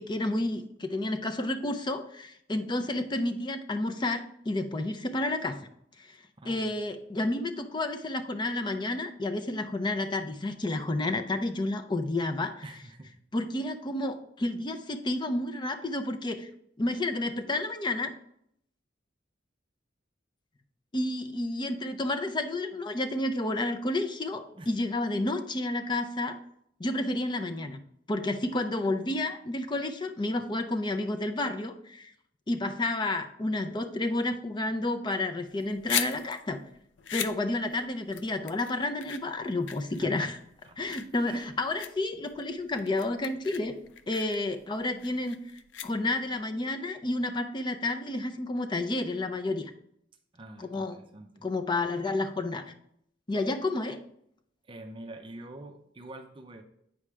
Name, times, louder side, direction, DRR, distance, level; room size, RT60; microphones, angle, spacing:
voice 1, 0.0-5.6 6.0-6.2 6.4-12.5 13.3-16.5 16.8-18.1 20.9-26.4 26.8-27.8 28.1-32.1 32.5-36.6 37.1-40.4 40.8-43.8 44.1-45.4 45.8-49.7 50.6-51.0 51.4-52.7 53.3-54.0, left 2 dB, 25° left, 7 dB, 0.5 m, -30 dB
voice 2, 6.4-6.7 12.6-13.2 24.5-24.7 39.9-40.3 40.6-40.8 41.3-41.5 50.3-51.5 54.7-56.6, right 2 dB, 30° right, 5 dB, 0.5 m, -46 dB
sound 1, 35.5-46.4, left 10 dB, 75° left, 0.4 m, -39 dB
8.3 x 4.9 x 3.3 m, 0.71 s
head